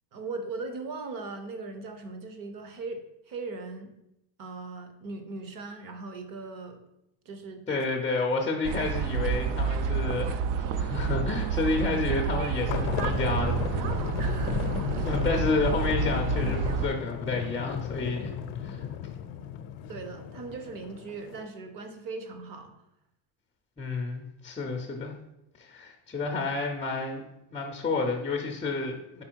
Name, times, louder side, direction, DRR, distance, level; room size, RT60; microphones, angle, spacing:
voice 1, 0.1-3.9 4.4-6.8 7.2-7.8 14.2-15.1 19.9-22.7, right 3 dB, 40° right, 7 dB, 0.8 m, -39 dB
voice 2, 7.7-14.0 15.0-18.3 18.6-18.8 23.8-25.1 25.6-27.2 27.5-29.2, left 3 dB, 15° left, 0 dB, 0.4 m, -30 dB
sound 1, 8.6-16.9, right 5 dB, 75° right, 0.6 m, -29 dB
sound 2, 12.7-21.5, left 9 dB, 65° left, 0.6 m, -34 dB
5.0 x 4.2 x 4.4 m, 0.85 s
cardioid pair, 150°, 49 cm